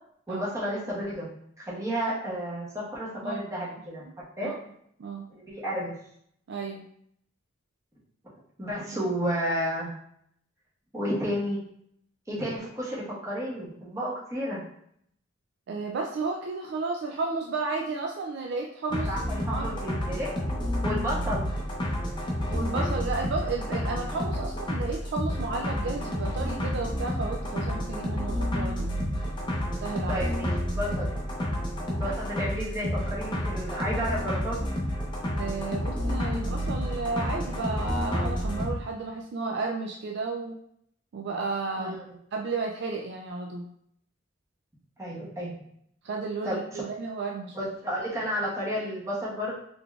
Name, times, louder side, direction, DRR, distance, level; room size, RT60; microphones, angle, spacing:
voice 1, 0.3-1.3 1.6-2.7 2.9-4.0 4.4-4.5 5.5-5.9 8.6-9.9 10.9-11.6 12.3-14.6 19.1-20.3 20.8-21.5 30.1-30.5 30.8-31.1 31.9-34.6 41.8-42.0 45.0-45.5 46.4-46.6 47.5-49.5, equal, 15° right, -8 dB, 1.1 m, -31 dB
voice 2, 6.5-6.8 15.7-20.0 22.5-28.9 29.8-30.2 35.4-40.5 41.1-41.9 42.3-43.7 46.0-47.5, right 3 dB, 55° right, 1 dB, 0.3 m, -33 dB
sound 1, 18.9-38.7, equal, 20° left, 0.5 m, -30 dB
3.8 x 3.3 x 2.4 m, 0.70 s
head